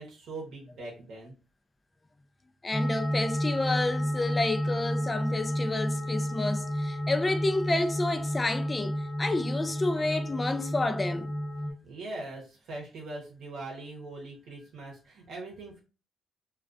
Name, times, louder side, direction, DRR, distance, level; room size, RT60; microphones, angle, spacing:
voice 1, 0.0-1.3 11.8-15.8, right 2 dB, 75° right, 0.7 m, -41 dB
voice 2, 2.6-11.3, left 2 dB, 25° left, 0.3 m, -30 dB
sound 1, 2.7-11.7, equal, 5° right, 0.7 m, -31 dB
2.3 x 2.2 x 2.4 m
cardioid pair, 90°, 0 cm